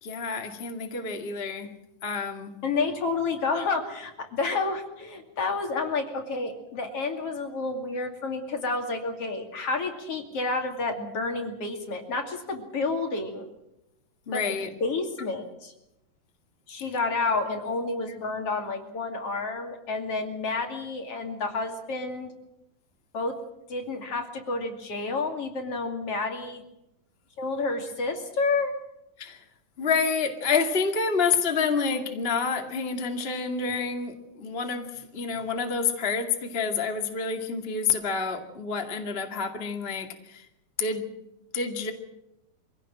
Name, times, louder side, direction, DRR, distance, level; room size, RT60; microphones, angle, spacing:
voice 1, 0.0-1.7 2.0-2.5 14.3-14.7 19.4-19.5 29.2-29.4 29.8-40.5 40.8-41.1 41.5-41.9, left 5 dB, 20° left, 4 dB, 1.8 m, -28 dB
voice 2, 2.6-13.5 14.3-14.4 14.8-15.7 16.7-22.3 23.1-23.3 23.7-26.6 27.4-28.7, left 3 dB, 45° left, 4 dB, 3.3 m, -30 dB
25.0 x 17.0 x 7.7 m, 0.88 s
omnidirectional pair, 4.1 m